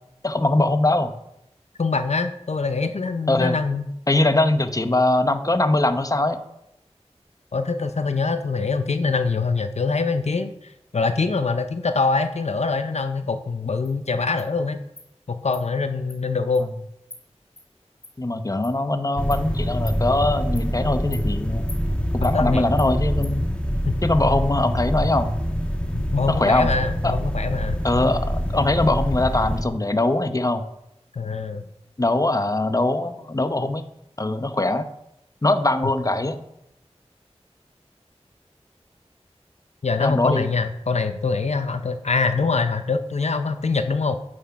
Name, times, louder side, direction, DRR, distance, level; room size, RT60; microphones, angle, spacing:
voice 1, 0.2-1.1 3.3-3.6 4.1-6.4 18.2-21.6 22.1-23.5 24.0-25.3 26.3-26.7 27.0-27.1 27.8-30.6 32.0-33.8 34.2-34.9 35.4-36.4 40.0-40.5, left 2 dB, 30° left, 9 dB, 0.8 m, -21 dB
voice 2, 1.8-3.8 7.5-14.8 15.3-16.7 22.2-22.7 23.9-24.0 25.9-27.8 31.1-31.7 39.8-44.2, left 4 dB, 75° left, 9 dB, 0.6 m, -24 dB
Insect, 13.8-13.9 14.4-14.5 15.0-15.1 15.5-15.6 16.1-16.2 16.5-16.6 17.1-17.2 17.6-17.7 18.0-18.1 18.6-18.7 19.3-19.4 19.9-20.0 20.6-20.7 21.1-21.2 21.7-21.8 22.2-22.3 22.8-22.9 23.2-23.3, left 2 dB, 60° left, 1.8 m, -41 dB
sound 1, 19.2-29.6, equal, 10° left, 1.4 m, -25 dB
9.6 x 6.3 x 5.8 m, 0.81 s
wide cardioid pair, 60°, 11 cm